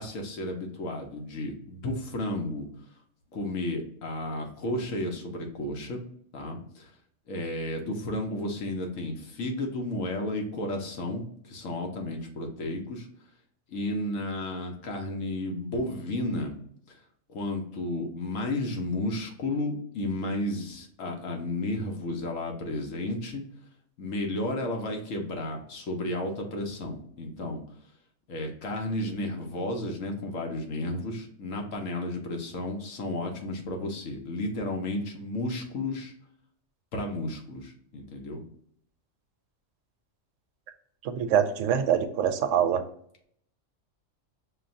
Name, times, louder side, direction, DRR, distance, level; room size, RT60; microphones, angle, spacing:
voice 1, 0.0-2.7 3.3-6.0 6.3-6.9 7.3-13.1 13.7-16.5 17.3-23.4 24.0-27.6 28.3-36.1 36.9-38.4, left 1 dB, 85° left, 2 dB, 1.3 m, -32 dB
voice 2, 41.0-42.8, right 8 dB, 75° right, 8 dB, 0.9 m, -24 dB
6.1 x 2.2 x 2.5 m, 0.64 s
omnidirectional pair, 1.3 m